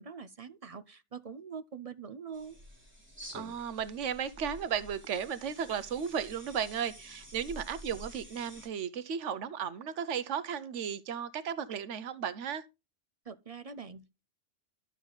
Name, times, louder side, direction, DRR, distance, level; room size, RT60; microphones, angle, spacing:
voice 1, 0.0-2.6 13.3-14.2, right 6 dB, 45° right, 0.5 m, -44 dB
sound 1, 2.3-8.7, right 1 dB, 10° right, 3.5 m, -50 dB
voice 2, 3.3-12.6, right 7 dB, 90° right, 1.1 m, -35 dB
12.0 x 7.1 x 3.9 m
omnidirectional pair, 1.2 m